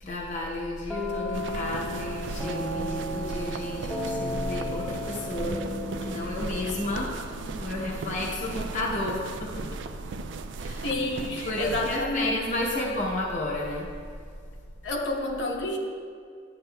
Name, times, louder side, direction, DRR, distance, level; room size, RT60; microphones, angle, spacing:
voice 1, 0.0-5.6 6.0-9.6 10.6-10.9 11.4-13.9, left 1 dB, 40° left, -3 dB, 0.7 m, -32 dB
sound 1, 0.9-8.6, left 1 dB, ahead, 0.7 m, -35 dB
sound 2, 1.3-12.0, right 3 dB, 65° right, 0.3 m, -37 dB
voice 2, 10.8-12.7 14.8-15.8, left 1 dB, 70° left, -1 dB, 1.0 m, -29 dB
10.5 x 7.7 x 2.2 m, 2.1 s
head